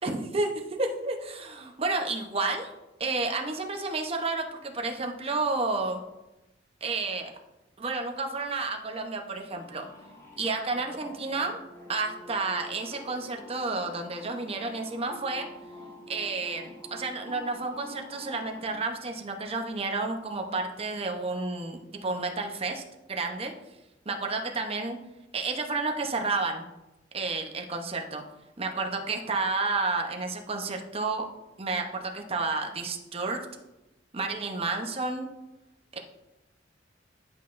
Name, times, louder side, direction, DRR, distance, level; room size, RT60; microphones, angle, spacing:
voice 1, 0.0-2.7 3.0-6.0 6.8-7.3 7.8-9.9 10.4-11.6 11.9-15.5 16.1-22.8 23.1-23.5 24.1-25.0 25.3-26.7 27.1-28.2 28.6-31.3 31.6-33.4 34.1-35.3 35.9-36.0, right 3 dB, 30° right, 3 dB, 0.8 m, -31 dB
sound 1, 9.5-18.6, left 1 dB, 15° left, 1.4 m, -47 dB
10.5 x 5.7 x 2.5 m, 0.97 s
head